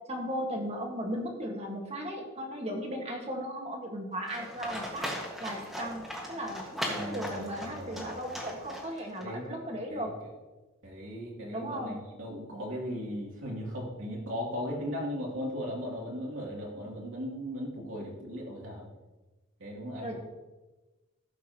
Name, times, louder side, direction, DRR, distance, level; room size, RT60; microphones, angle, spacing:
voice 1, 0.1-6.7 6.9-10.1 11.5-12.0 20.0-20.2, equal, 30° right, 1 dB, 1.7 m, -36 dB
Livestock farm animals working animals, 4.3-9.2, equal, ahead, 1.7 m, -38 dB
voice 2, 6.8-8.1 9.2-9.6 9.9-10.1 10.8-18.9 19.6-20.2, equal, 75° right, -3 dB, 2.9 m, -37 dB
15.0 x 7.3 x 3.0 m, 1.1 s
head